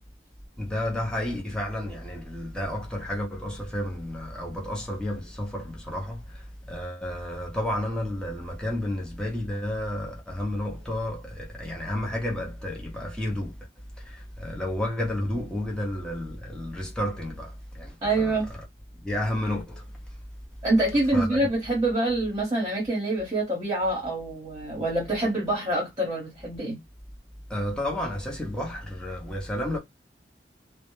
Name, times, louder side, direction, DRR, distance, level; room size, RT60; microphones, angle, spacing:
voice 1, 0.6-13.7 14.0-18.3 19.0-20.2 21.1-21.4 27.5-29.8, left 1 dB, 5° left, 0.6 m, -31 dB
voice 2, 18.0-18.5 20.6-26.8, right 2 dB, 20° right, 0.9 m, -26 dB
2.1 x 2.0 x 3.0 m
head